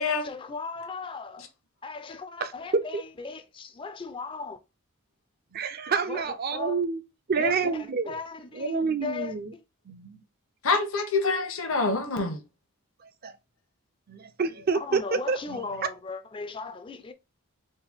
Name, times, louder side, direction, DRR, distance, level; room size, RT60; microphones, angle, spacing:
voice 1, 0.2-1.4 1.8-4.6 6.1-6.2 6.5-6.8 7.4-9.6 14.7-17.1, left 4 dB, 25° left, 0.4 m, -37 dB
voice 2, 2.4-3.0 5.5-7.0 7.3-8.1 8.5-9.5 9.9-10.2 13.2-13.3 14.1-15.9, right 5 dB, 45° right, 0.5 m, -28 dB
voice 3, 10.6-12.4, left 3 dB, 70° left, 0.9 m, -26 dB
4.2 x 2.2 x 3.5 m
head